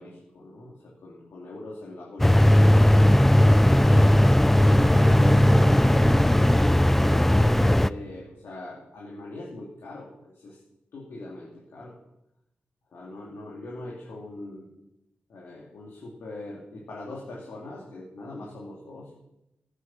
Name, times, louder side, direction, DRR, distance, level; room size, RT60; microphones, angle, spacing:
voice 1, 0.0-3.1 6.4-10.6 10.9-12.0 12.9-14.7 15.3-19.1, left 2 dB, 85° left, -4 dB, 2.9 m, -41 dB
sound 1, 2.2-7.9, left 1 dB, 5° left, 0.4 m, -17 dB
voice 2, 3.8-6.1, right 3 dB, 40° right, 5 dB, 1.5 m, -36 dB
14.0 x 9.1 x 7.4 m, 0.87 s
wide cardioid pair, 110°, 4 cm